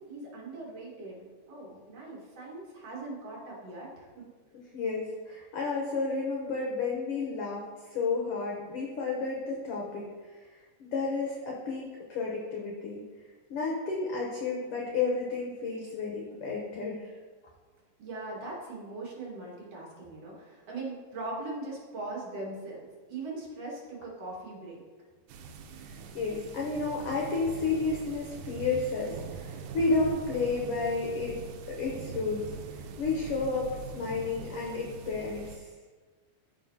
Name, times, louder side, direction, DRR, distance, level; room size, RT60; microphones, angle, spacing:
voice 1, 0.0-4.3 18.0-24.8, right 2 dB, 60° right, -4 dB, 2.5 m, -40 dB
voice 2, 4.5-10.1 10.5-13.0 13.5-17.1 25.9-31.4 31.7-32.5 33.0-35.7, left 4 dB, 65° left, -2 dB, 1.6 m, -32 dB
sound 1, 25.3-35.6, right 5 dB, 90° right, 2.1 m, -42 dB
13.0 x 4.5 x 2.7 m, 1.4 s
omnidirectional pair, 3.4 m